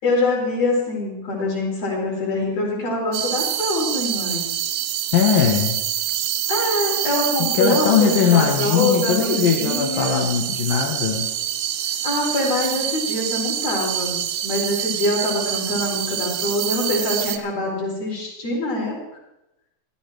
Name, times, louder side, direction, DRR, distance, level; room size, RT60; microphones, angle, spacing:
voice 1, 0.0-4.5 6.5-10.3 12.0-14.2 14.4-18.9, left 2 dB, 45° left, -3 dB, 5.3 m, -24 dB
sound 1, 3.1-17.4, right 11 dB, 80° right, 2.4 m, -26 dB
voice 2, 5.1-5.8 7.4-11.3, left 7 dB, 85° left, 1 dB, 3.1 m, -20 dB
15.5 x 13.0 x 4.5 m, 0.89 s
omnidirectional pair, 3.9 m